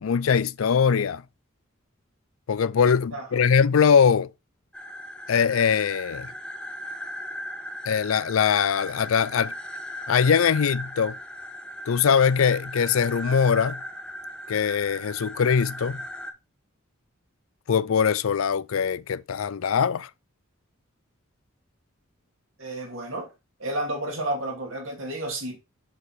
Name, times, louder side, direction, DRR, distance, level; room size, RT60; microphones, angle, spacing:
voice 1, 0.0-1.2 2.5-4.3 5.3-6.3 7.9-9.5 10.1-11.2 11.9-13.8 14.5-16.0 17.7-20.1, left 6 dB, 75° left, 0.4 m, -22 dB
voice 2, 3.1-3.4 22.6-23.3 23.6-25.6, right 1 dB, 70° right, 2.4 m, -31 dB
sound 1, 4.7-16.3, left 1 dB, 5° left, 0.9 m, -37 dB
6.5 x 5.2 x 4.3 m
head